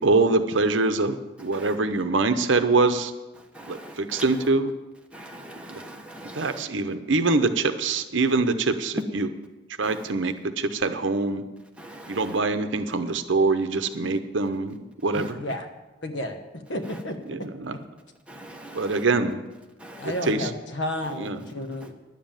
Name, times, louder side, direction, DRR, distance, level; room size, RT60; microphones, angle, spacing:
voice 1, 0.0-3.1 3.7-4.7 5.7-5.8 6.3-9.3 9.8-11.4 12.1-15.4 17.3-17.8 18.7-19.4 20.0-20.5 21.2-21.4, right 3 dB, 70° right, 0.8 m, -24 dB
voice 2, 3.5-4.2 5.1-6.6 9.8-10.0 11.8-12.3 15.1-15.3 18.3-19.0 19.8-20.1, right 1 dB, 5° right, 1.2 m, -42 dB
voice 3, 15.1-15.7 16.0-17.2 20.0-21.9, left 1 dB, 65° left, 1.2 m, -32 dB
10.5 x 7.6 x 9.0 m
head